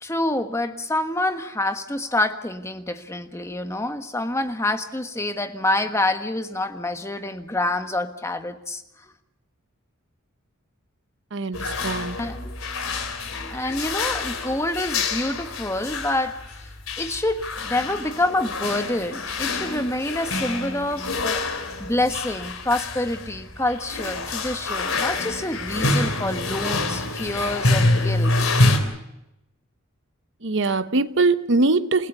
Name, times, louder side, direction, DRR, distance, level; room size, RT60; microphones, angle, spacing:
voice 1, 0.0-8.8 12.2-12.5 13.5-16.4 17.0-21.4 21.8-28.3, left 1 dB, 15° left, 1.3 m, -27 dB
voice 2, 11.3-12.2 30.4-32.1, right 3 dB, 60° right, 1.0 m, -22 dB
sound 1, 11.5-28.8, left 2 dB, 90° left, 3.7 m, -26 dB
28.0 x 16.0 x 6.9 m
head